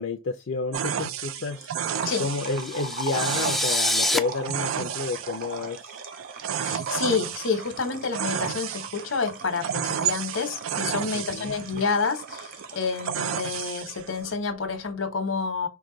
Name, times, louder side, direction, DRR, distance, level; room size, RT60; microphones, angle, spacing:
voice 1, 0.0-1.7 2.2-6.0 11.1-11.5, left 4 dB, 65° left, 0.5 m, -30 dB
sound 1, 0.7-14.3, right 8 dB, 85° right, 0.4 m, -32 dB
sound 2, 1.2-13.9, right 5 dB, 45° right, 0.7 m, -40 dB
sound 3, 2.3-4.2, left 1 dB, ahead, 0.3 m, -27 dB
voice 2, 6.6-15.7, left 4 dB, 85° left, 1.1 m, -29 dB
4.7 x 2.2 x 3.8 m
head